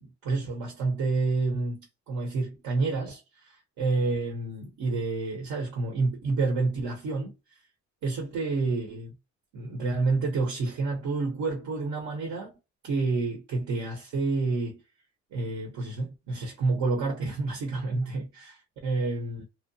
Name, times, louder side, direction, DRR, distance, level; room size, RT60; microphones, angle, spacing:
voice 1, 0.0-7.3 8.0-9.2 9.5-12.5 12.8-14.8 15.3-19.4, right 3 dB, 80° right, 0.8 m, -29 dB
2.7 x 2.0 x 2.6 m
cardioid pair, 90°, 30 cm